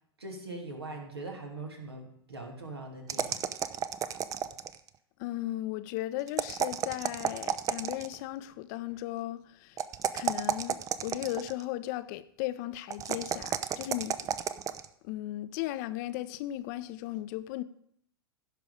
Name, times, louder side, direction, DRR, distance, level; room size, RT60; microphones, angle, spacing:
voice 1, 0.2-3.4, right 2 dB, 85° right, 2.5 m, -41 dB
sound 1, 3.1-4.9 6.3-8.2 9.8-11.6 12.9-14.9, right 9 dB, 25° right, 0.6 m, -32 dB
voice 2, 5.2-9.8 10.1-14.2 15.0-17.6, left 15 dB, 45° left, 0.7 m, -36 dB
16.0 x 6.0 x 5.0 m
figure-of-eight pair, 90°, 13 cm